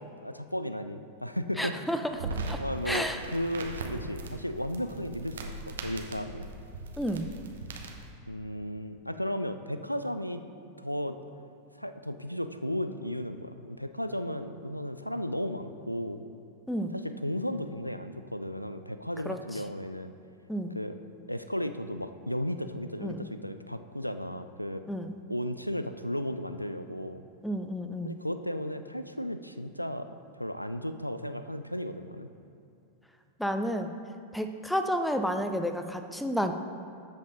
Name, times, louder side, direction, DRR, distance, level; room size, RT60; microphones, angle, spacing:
voice 1, 0.2-1.8 2.5-6.5 8.3-10.4 10.8-11.2 11.8-16.2 16.9-20.1 20.7-21.0 21.3-24.8 25.3-27.2 28.0-30.1 30.4-32.3, equal, 90° left, 10 dB, 0.4 m, -34 dB
voice 2, 1.6-2.6 2.9-3.2 7.0-7.3 16.7-16.9 19.3-19.4 20.5-20.7 23.0-23.3 24.9-25.1 27.4-28.1 33.4-33.9 34.3-36.5, equal, ahead, 7 dB, 0.5 m, -31 dB
sound 1, 2.1-8.1, right 2 dB, 65° right, 0.9 m, -39 dB
13.5 x 5.4 x 3.9 m, 2.6 s
figure-of-eight pair, 90°, 0 cm